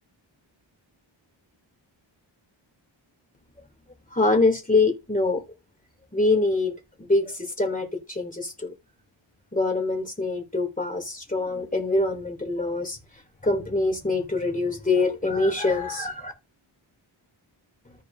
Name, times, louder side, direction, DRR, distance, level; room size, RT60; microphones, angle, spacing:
voice 1, 4.1-5.4 6.1-6.7 7.1-8.7 9.5-13.0 13.4-16.3, left 3 dB, 15° left, 3.0 m, -24 dB
14.5 x 4.8 x 2.7 m
wide cardioid pair, 70°, 48 cm